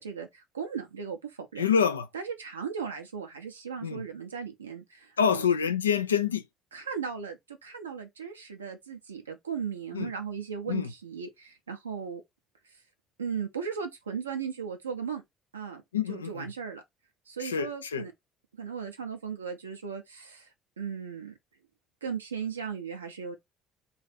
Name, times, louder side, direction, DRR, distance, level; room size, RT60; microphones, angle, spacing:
voice 1, 0.0-1.7 2.1-5.5 6.7-12.2 13.2-15.2 15.5-15.8 16.1-16.8 17.3-18.1 18.6-20.5 20.8-21.3 22.0-23.4, right 6 dB, 90° right, 0.6 m, -37 dB
voice 2, 1.6-2.1 3.8-4.0 5.2-6.4 9.9-10.1 10.7-10.9 15.9-16.5 17.4-18.1, left 7 dB, 90° left, 0.3 m, -26 dB
2.6 x 2.5 x 4.1 m
figure-of-eight pair, 55°, 0 cm